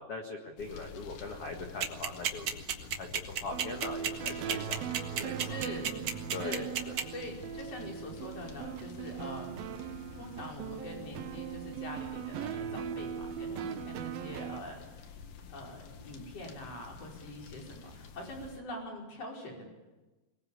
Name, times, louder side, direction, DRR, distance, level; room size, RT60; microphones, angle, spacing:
voice 1, 0.0-5.6 6.3-6.9, left 3 dB, 75° left, 2 dB, 1.3 m, -42 dB
sound 1, 0.6-18.6, left 5 dB, 60° left, 2.9 m, -49 dB
sound 2, 1.8-7.0, right 8 dB, 65° right, 1.8 m, -31 dB
sound 3, 3.5-14.6, right 9 dB, 85° right, 2.1 m, -40 dB
voice 2, 5.4-6.1 6.4-6.7 7.1-9.8 10.1-14.9 15.5-19.7, left 1 dB, 30° left, 0 dB, 5.7 m, -44 dB
23.5 x 22.0 x 8.6 m, 1.1 s
omnidirectional pair, 5.9 m